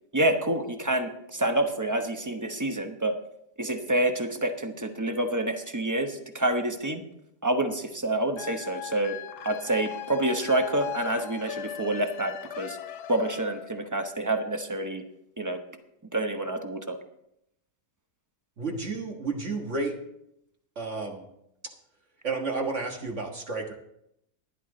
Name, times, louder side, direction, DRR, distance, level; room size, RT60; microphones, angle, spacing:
voice 1, 0.1-3.2 3.6-7.0 7.4-9.2 9.4-12.8 13.1-15.0 15.4-15.6 16.1-17.0, right 1 dB, 15° right, 6 dB, 0.7 m, -27 dB
sound 1, 8.4-13.9, left 11 dB, 80° left, 1.4 m, -39 dB
voice 2, 18.6-20.0 20.8-21.3 21.6-21.7 22.2-23.7, right 3 dB, 45° right, 1 dB, 1.8 m, -31 dB
15.0 x 11.0 x 3.9 m, 0.80 s
omnidirectional pair, 1.7 m